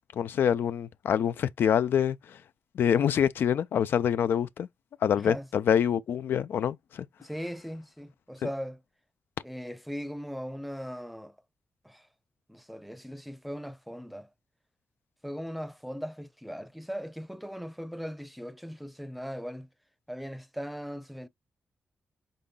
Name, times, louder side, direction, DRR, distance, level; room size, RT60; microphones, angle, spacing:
voice 1, 0.1-2.4 2.7-4.7 5.0-7.1, left 8 dB, 75° left, 0.3 m, -26 dB
voice 2, 5.1-5.5 7.2-8.8 9.4-11.4 11.8-12.1 12.5-14.3 15.2-19.7 20.1-21.3, equal, ahead, 0.6 m, -39 dB
5.4 x 3.7 x 2.2 m
cardioid pair, 70°, 4 cm